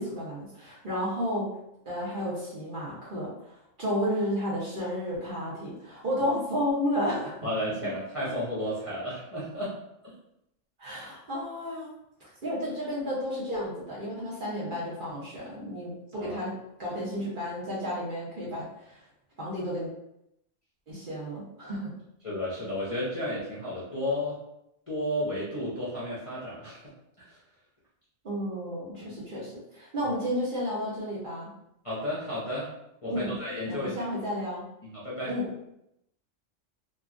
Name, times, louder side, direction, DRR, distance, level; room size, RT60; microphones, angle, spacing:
voice 1, 0.0-1.5 1.8-7.4 10.8-11.9 12.2-19.0 19.4-19.9 20.9-21.9 28.2-31.5 33.0-33.4 33.6-34.6 35.3-35.5, equal, 45° right, -7 dB, 1.0 m, -32 dB
voice 2, 7.4-9.7 10.0-10.1 16.2-16.4 22.2-24.4 24.9-26.9 27.2-27.4 29.0-29.1 30.0-30.1 31.8-32.7 33.0-34.1 34.9-35.3, left 1 dB, 35° left, -9 dB, 0.6 m, -32 dB
2.9 x 2.5 x 2.4 m, 0.81 s
omnidirectional pair, 1.3 m